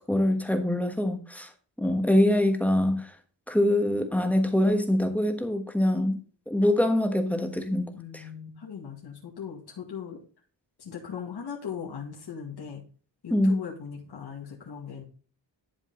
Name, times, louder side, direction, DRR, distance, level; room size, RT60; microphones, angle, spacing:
voice 1, 0.1-1.5 1.8-3.1 3.5-6.2 6.5-7.9 13.3-13.6, left 1 dB, 5° left, 1.3 m, -24 dB
voice 2, 7.9-10.2 10.8-12.8 13.2-15.0, left 7 dB, 60° left, 2.0 m, -39 dB
11.0 x 5.0 x 3.8 m
wide cardioid pair, 145°, 44 cm